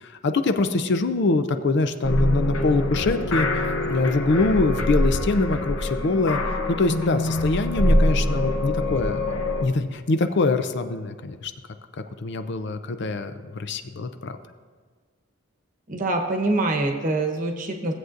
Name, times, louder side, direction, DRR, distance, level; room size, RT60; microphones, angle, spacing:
voice 1, 0.0-6.4 6.7-9.2 9.6-11.5 12.2-14.4, left 3 dB, 55° left, 9 dB, 0.5 m, -24 dB
sound 1, 2.0-9.6, left 1 dB, 85° left, 0.9 m, -24 dB
voice 2, 15.9-17.9, right 2 dB, 40° right, 3 dB, 1.0 m, -24 dB
16.5 x 7.9 x 2.5 m, 1.5 s
head